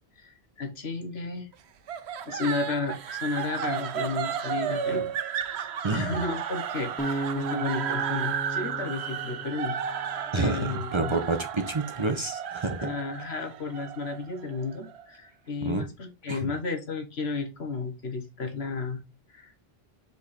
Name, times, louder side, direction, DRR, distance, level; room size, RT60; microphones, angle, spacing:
voice 1, 0.2-1.5 2.3-5.1 5.6-11.2 12.8-19.0 19.3-19.5, left 4 dB, 80° left, 1.6 m, -33 dB
sound 1, 1.9-15.0, right 8 dB, 80° right, 0.9 m, -33 dB
voice 2, 5.8-6.2 10.3-12.9 15.6-15.9 16.3-16.5, right 3 dB, 30° right, 0.8 m, -29 dB
Acoustic guitar, 7.0-10.2, right 1 dB, 10° left, 0.9 m, -35 dB
5.0 x 4.8 x 4.2 m
omnidirectional pair, 1.1 m